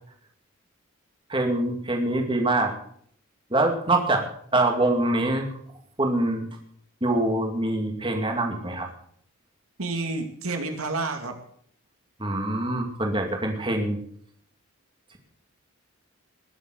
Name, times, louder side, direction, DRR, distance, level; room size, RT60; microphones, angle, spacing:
voice 1, 1.3-2.7 3.5-4.2 4.5-5.4 6.0-6.5 7.0-8.9 12.2-14.0, right 2 dB, 20° right, 3 dB, 2.4 m, -24 dB
voice 2, 9.8-11.4, right 3 dB, 70° right, 5 dB, 2.4 m, -29 dB
20.5 x 7.5 x 7.7 m, 0.63 s
head